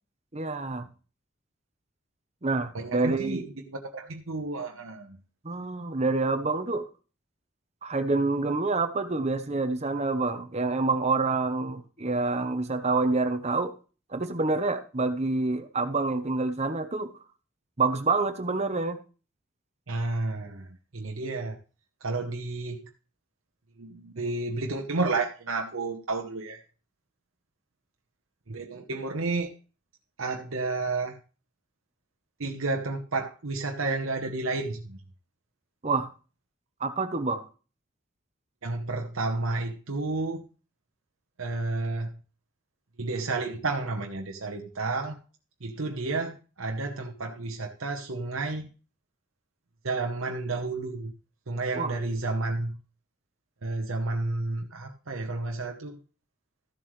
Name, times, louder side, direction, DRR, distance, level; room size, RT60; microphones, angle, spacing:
voice 1, 0.3-0.9 2.4-3.4 5.4-6.9 7.8-13.7 14.1-17.1 17.8-19.0 35.8-36.1 36.8-37.4 51.7-52.0, right 3 dB, 30° right, 10 dB, 0.9 m, -27 dB
voice 2, 2.7-5.2 19.9-20.7 20.9-21.6 22.0-22.9 23.8-26.6 28.5-29.5 30.2-31.2 32.4-35.0 38.6-40.5 41.4-42.1 43.0-45.2 45.6-48.7 49.8-51.1 51.5-52.8 53.6-56.0, right 3 dB, 85° right, 3 dB, 1.0 m, -31 dB
14.0 x 7.5 x 3.2 m, 0.36 s
head